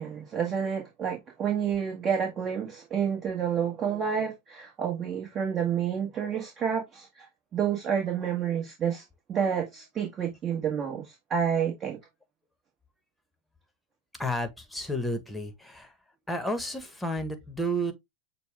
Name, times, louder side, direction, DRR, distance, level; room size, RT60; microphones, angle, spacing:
voice 1, 0.0-7.3 7.5-9.0 9.3-11.0 11.3-12.0, right 7 dB, 30° right, 1.4 m, -29 dB
voice 2, 14.1-16.0 16.3-17.9, equal, 5° left, 1.2 m, -31 dB
6.7 x 2.3 x 3.4 m
hypercardioid pair, 95°, 0 cm